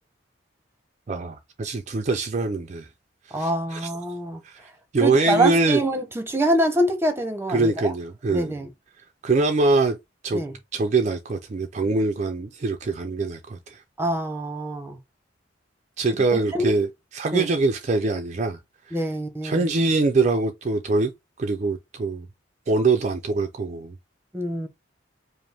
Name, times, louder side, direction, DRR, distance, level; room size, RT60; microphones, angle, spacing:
voice 1, 1.1-2.9 3.3-3.9 4.4-5.8 7.5-8.5 9.2-10.0 10.2-10.4 10.7-13.8 16.0-18.6 18.9-19.0 19.4-21.1 21.4-22.3 22.7-24.0, right 3 dB, 40° right, 0.4 m, -23 dB
voice 2, 3.3-4.4 5.0-7.7 8.3-8.7 10.3-10.5 14.0-15.0 16.3-16.7 17.3-17.5 18.9-19.7 24.3-24.7, right 1 dB, 15° right, 0.8 m, -25 dB
5.0 x 2.1 x 3.3 m
head